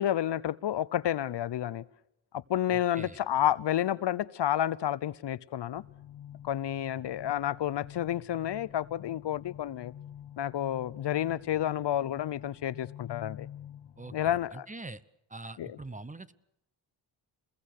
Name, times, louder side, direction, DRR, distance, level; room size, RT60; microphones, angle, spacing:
voice 1, 0.0-1.8 2.3-5.8 6.4-9.9 10.4-13.5 14.1-14.7 15.6-15.8, left 11 dB, 65° left, 17 dB, 0.8 m, -30 dB
voice 2, 2.7-3.2 14.0-15.0 15.3-16.3, right 2 dB, 15° right, 15 dB, 1.0 m, -44 dB
sound 1, 5.7-14.3, left 11 dB, 85° left, 1.2 m, -47 dB
28.0 x 21.0 x 6.6 m, 0.81 s
cardioid pair, 75°, 45 cm